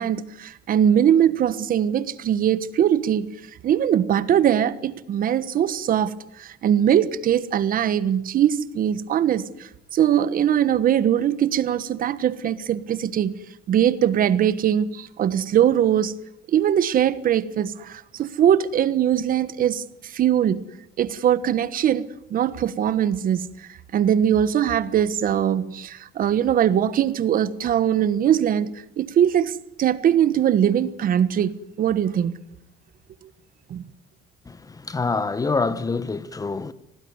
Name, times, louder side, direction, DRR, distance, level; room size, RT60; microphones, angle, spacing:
voice 1, 0.0-3.3 3.6-13.3 13.7-16.1 16.5-20.6 21.0-31.5 31.8-32.3 33.7-33.9, right 10 dB, 55° right, 1.4 m, -21 dB
voice 2, 34.5-36.7, left 4 dB, 20° left, 1.2 m, -26 dB
25.5 x 19.0 x 9.6 m
cardioid pair, 110°, 17 cm